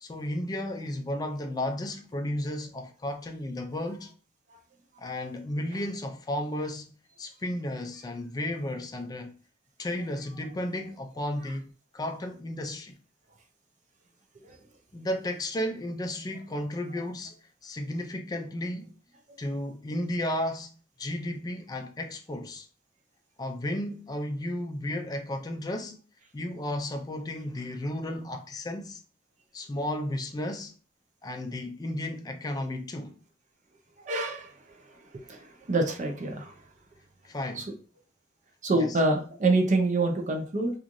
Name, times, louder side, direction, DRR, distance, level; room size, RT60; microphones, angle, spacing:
voice 1, 0.0-4.1 5.0-9.3 9.8-13.0 14.9-17.3 17.6-18.9 19.4-20.7 21.0-22.7 23.4-26.0 26.3-29.0 29.5-30.7 31.2-33.2 37.2-37.7 38.7-39.0, left 1 dB, 20° left, 0.3 m, -33 dB
voice 2, 34.0-34.5 34.9-35.0 35.3-36.6 37.6-37.7 38.6-40.7, right 2 dB, 45° right, 0.5 m, -26 dB
3.0 x 2.4 x 2.5 m
head